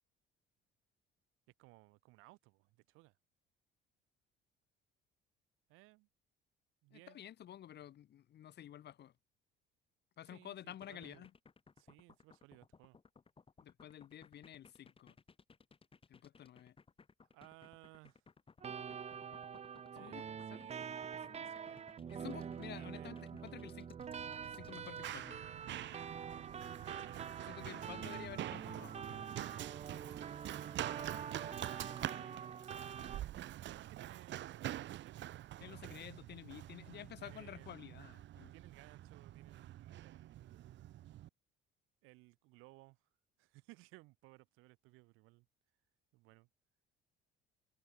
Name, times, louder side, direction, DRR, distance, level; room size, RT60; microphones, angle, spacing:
voice 1, 1.6-3.2 5.7-6.1 6.8-7.2 10.2-11.3 11.8-13.0 17.3-18.2 19.9-21.8 22.1-23.2 27.0-28.7 30.3-30.9 31.3-33.1 33.7-36.1 37.2-37.9 38.5-40.7 42.0-43.0 43.4-45.5 46.1-46.5, right 23 dB, 90° right, 8.0 m, -61 dB
voice 2, 6.9-9.1 10.2-11.3 13.6-15.2 16.1-16.8 20.0-20.2 20.5-20.7 21.3-21.6 22.1-24.0 24.3-25.4 27.5-29.3 35.6-38.5, left 11 dB, 55° left, 3.8 m, -51 dB
sound 1, 10.7-25.2, left 5 dB, 25° left, 6.0 m, -62 dB
sound 2, 18.6-33.2, right 7 dB, 30° right, 0.9 m, -46 dB
Run, 24.0-41.3, right 13 dB, 65° right, 2.4 m, -46 dB
cardioid pair, 110°, 20 cm